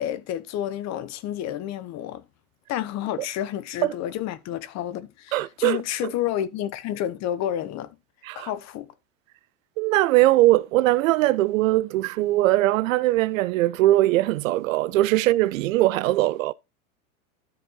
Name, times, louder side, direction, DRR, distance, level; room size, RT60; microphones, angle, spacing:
voice 1, 0.0-2.2 2.7-8.0 8.3-8.9, left 11 dB, 40° left, 1.0 m, -30 dB
voice 2, 5.3-5.8 8.3-8.5 9.8-16.5, right 17 dB, 65° right, 0.6 m, -21 dB
13.0 x 4.4 x 4.0 m
hypercardioid pair, 105°, 43 cm